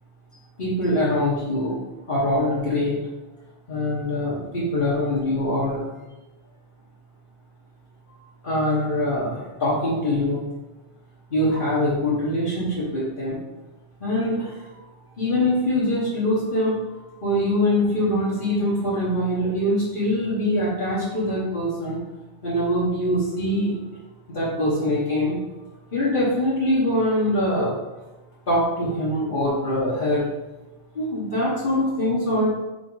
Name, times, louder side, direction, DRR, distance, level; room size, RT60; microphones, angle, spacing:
voice 1, 0.6-1.8 2.1-3.0 3.7-5.8 8.4-10.4 11.3-13.4 14.0-14.8 15.2-16.8 17.2-22.0 22.4-23.7 24.3-25.3 25.9-27.7 28.5-30.2 30.9-32.5, left 1 dB, 45° left, -9 dB, 1.8 m, -23 dB
5.9 x 4.2 x 4.0 m, 1.1 s
omnidirectional pair, 1.2 m